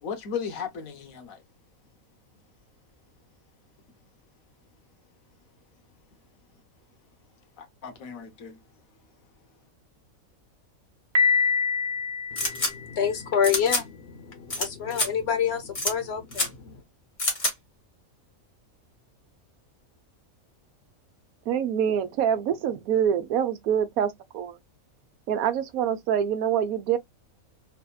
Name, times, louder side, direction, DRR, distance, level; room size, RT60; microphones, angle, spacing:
voice 1, 0.0-1.4 7.6-8.6, left 7 dB, 75° left, 1.3 m, -36 dB
Piano, 11.1-13.1, left 5 dB, 40° right, 0.6 m, -25 dB
voice 2, 12.3-16.8, left 7 dB, 55° left, 0.9 m, -28 dB
sound 1, 12.4-12.7 13.4-13.8 14.5-14.7 14.9-15.1 15.7-15.9 16.3-16.5 17.2-17.5, left 2 dB, 25° left, 1.1 m, -26 dB
voice 3, 21.5-24.6 25.3-27.0, right 9 dB, 85° right, 1.1 m, -25 dB
3.4 x 2.7 x 2.3 m
omnidirectional pair, 1.5 m